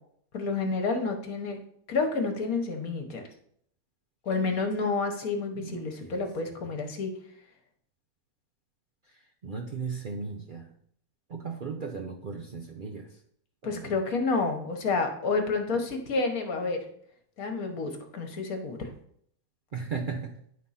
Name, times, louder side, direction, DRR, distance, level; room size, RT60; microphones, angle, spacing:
voice 1, 0.3-1.6 1.9-3.2 4.2-7.1 13.6-16.8 17.4-18.9, left 4 dB, 55° left, 5 dB, 1.5 m, -29 dB
voice 2, 5.5-6.3 9.4-10.7 11.3-13.1 13.6-14.0 19.7-20.3, right 5 dB, 75° right, 2 dB, 0.4 m, -36 dB
9.8 x 3.7 x 5.6 m, 0.66 s
omnidirectional pair, 1.9 m